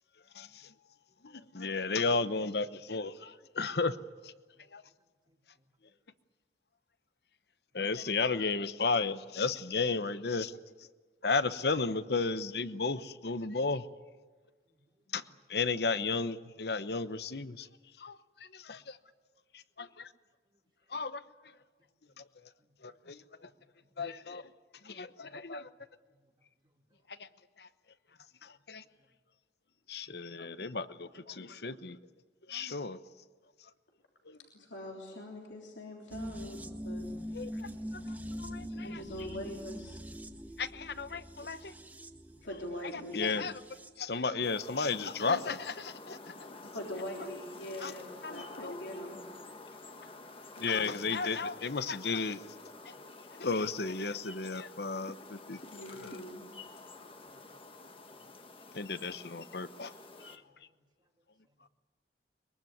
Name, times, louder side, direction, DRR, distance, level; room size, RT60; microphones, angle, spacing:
voice 1, 0.3-0.7 1.2-4.0 4.2-4.3 4.7-4.8 7.7-10.6 11.2-13.9 15.1-15.2 15.5-17.7 18.0-19.0 19.5-20.1 20.9-21.2 22.2-22.3 22.8-23.5 24.0-24.5 24.8-25.7 27.1-27.3 27.6-27.7 28.4-28.8 29.9-32.0 32.5-33.0 34.2-34.4 37.3-39.0 40.6-41.7 43.1-43.6 44.0-46.3 47.8-47.9 48.2-48.7 50.6-52.4 52.8-52.9 53.4-55.6 55.9-56.2 58.7-59.9 60.2-60.4, left 4 dB, 65° left, 13 dB, 0.9 m, -34 dB
voice 2, 34.5-37.2 37.5-37.6 38.8-40.0 40.3-40.4 42.4-43.3 46.7-49.3 50.6-51.0 55.7-56.5, left 1 dB, 90° left, 0 dB, 3.4 m, -43 dB
sound 1, 36.1-44.0 44.3-44.4, equal, 10° right, 1.0 m, -43 dB
voice 3, 42.1-42.4 49.8-49.9 52.9-53.0 57.1-57.6 60.6-61.1, equal, 25° right, 1 dB, 1.6 m, -71 dB
sound 2, 44.4-60.4, left 3 dB, 30° left, 1.4 m, -49 dB
23.0 x 22.5 x 9.4 m, 1.4 s
head